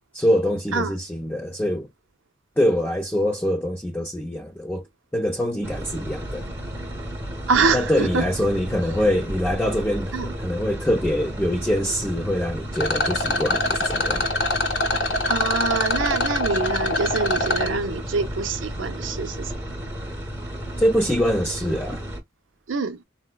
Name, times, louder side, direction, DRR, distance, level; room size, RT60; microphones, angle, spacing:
voice 1, 0.1-1.9 2.6-4.8 5.1-6.5 7.7-14.3 20.8-22.0, equal, 10° left, 0.4 m, -24 dB
sound 1, 5.6-22.2, equal, 15° right, 0.9 m, -33 dB
voice 2, 7.5-8.2 10.1-10.3 15.3-19.5 22.7-23.0, right 4 dB, 80° right, 0.6 m, -25 dB
Rattle, 12.7-17.7, left 2 dB, 60° left, 0.8 m, -24 dB
4.1 x 2.0 x 2.2 m
head